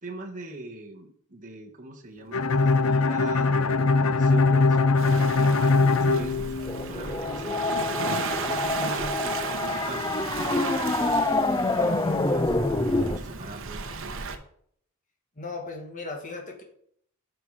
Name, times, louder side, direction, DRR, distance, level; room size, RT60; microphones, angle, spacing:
voice 1, 0.0-4.9 5.3-12.5 13.1-13.9, right 2 dB, 35° right, 1 dB, 1.6 m, -41 dB
Bowed string instrument, 2.3-7.1, left 3 dB, 70° left, 0.6 m, -21 dB
Waves surf, 5.0-14.4, right 4 dB, 65° right, 1.0 m, -35 dB
sound 1, 6.6-13.2, left 2 dB, 15° left, 0.5 m, -26 dB
voice 2, 15.4-16.6, left 3 dB, 35° left, 2 dB, 1.9 m, -36 dB
11.5 x 5.6 x 5.0 m, 0.67 s
head